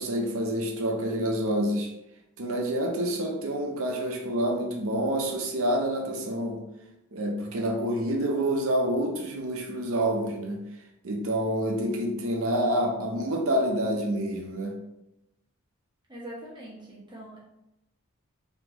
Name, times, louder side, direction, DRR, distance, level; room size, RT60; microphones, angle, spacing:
voice 1, 0.0-1.9 2.4-6.6 7.1-10.6 11.0-14.7, right 1 dB, 70° right, 2 dB, 0.7 m, -27 dB
voice 2, 16.1-17.4, right 1 dB, 20° right, -6 dB, 1.2 m, -42 dB
3.7 x 3.0 x 2.9 m, 0.86 s
head